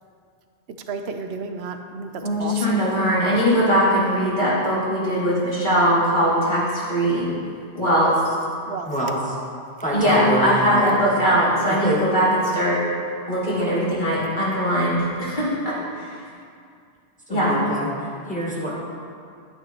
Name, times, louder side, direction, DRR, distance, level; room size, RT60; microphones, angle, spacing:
voice 1, 0.9-2.8 8.7-8.9 11.6-11.7, right 4 dB, 70° right, 6 dB, 0.9 m, -32 dB
voice 2, 2.2-7.3 7.7-8.1 9.9-12.8 13.3-16.2 17.3-17.5, equal, 45° left, -8 dB, 2.5 m, -20 dB
voice 3, 9.8-10.9 11.7-12.0 17.3-17.9 18.3-18.7, right 1 dB, 5° left, -6 dB, 1.5 m, -25 dB
11.5 x 9.1 x 2.9 m, 2.3 s
omnidirectional pair, 1.2 m